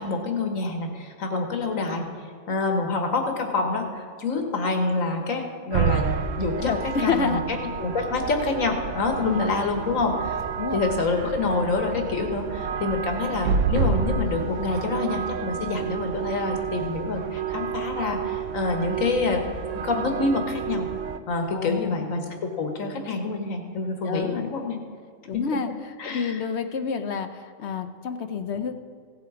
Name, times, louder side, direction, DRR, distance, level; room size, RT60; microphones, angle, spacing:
voice 1, 0.0-2.1 2.5-10.4 10.7-19.4 19.8-20.9 21.3-24.8 25.3-25.7 26.0-26.4, left 3 dB, 90° left, 4 dB, 1.7 m, -27 dB
sound 1, 5.7-21.2, right 6 dB, 75° right, 1.0 m, -29 dB
voice 2, 6.6-7.4 9.2-9.3 10.6-10.8 21.5-22.0 24.0-24.5 25.3-28.8, left 5 dB, 60° left, 8 dB, 1.0 m, -29 dB
16.5 x 7.6 x 4.9 m, 2.1 s
omnidirectional pair, 1.3 m